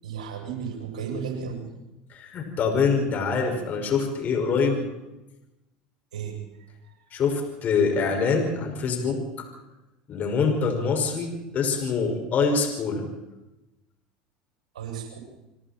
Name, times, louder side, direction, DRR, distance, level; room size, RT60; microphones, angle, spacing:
voice 1, 0.0-1.7 6.1-6.4 6.8-7.0 14.7-15.2, right 6 dB, 90° right, 1 dB, 7.7 m, -34 dB
voice 2, 2.1-4.8 7.1-9.5 10.1-13.1, left 5 dB, 45° left, 3 dB, 5.9 m, -25 dB
28.5 x 24.5 x 4.5 m, 0.97 s
hypercardioid pair, 85°, 4 cm